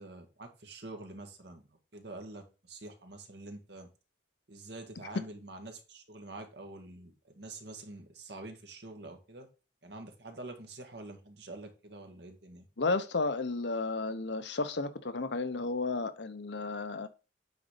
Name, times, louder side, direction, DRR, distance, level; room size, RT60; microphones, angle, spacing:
voice 1, 0.0-3.9 4.5-9.5 9.8-12.7, right 2 dB, 60° right, 1.7 m, -46 dB
voice 2, 12.8-17.1, left 3 dB, 70° left, 0.8 m, -33 dB
9.4 x 4.1 x 5.1 m
head